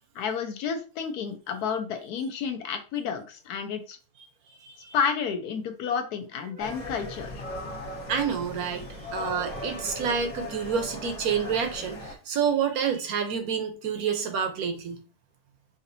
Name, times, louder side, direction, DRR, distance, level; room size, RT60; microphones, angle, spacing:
voice 1, 0.1-4.0 4.9-7.4, left 6 dB, 75° left, 1.1 m, -30 dB
voice 2, 4.6-4.9 6.6-6.7 8.0-15.0, right 7 dB, 70° right, 1.1 m, -29 dB
sound 1, 6.6-12.1, left 1 dB, 55° left, 1.3 m, -38 dB
5.0 x 2.7 x 2.6 m
omnidirectional pair, 1.8 m